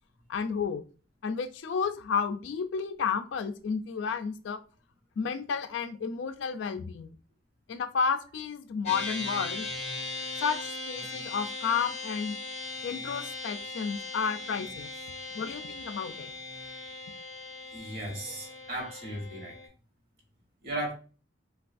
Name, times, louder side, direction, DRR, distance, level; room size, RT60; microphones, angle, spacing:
voice 1, 0.3-0.8 1.2-4.6 5.2-7.1 7.7-9.7 10.4-12.4 12.8-14.9 15.3-16.3, left 6 dB, 70° left, 0.3 m, -31 dB
sound 1, 8.9-19.7, left 2 dB, 35° left, 0.6 m, -39 dB
voice 2, 17.7-19.6 20.6-20.9, right 1 dB, 50° right, 1.0 m, -36 dB
3.4 x 2.3 x 2.4 m
head